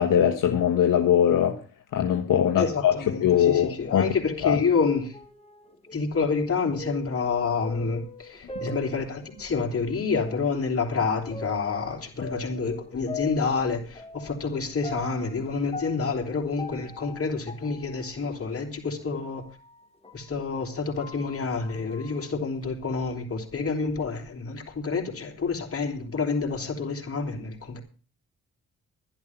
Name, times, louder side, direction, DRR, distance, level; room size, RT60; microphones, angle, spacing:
voice 1, 0.0-1.6 1.9-2.9 3.2-4.1 4.4-4.6, left 9 dB, 65° left, 1.5 m, -21 dB
voice 2, 2.6-5.2 5.9-19.4 20.1-27.8, left 4 dB, 40° left, 3.6 m, -28 dB
sound 1, 5.1-9.7 10.2-10.3 11.3-20.3 20.7-22.6, left 2 dB, 15° left, 3.1 m, -42 dB
11.5 x 11.0 x 6.0 m
supercardioid pair, 60°, 34 cm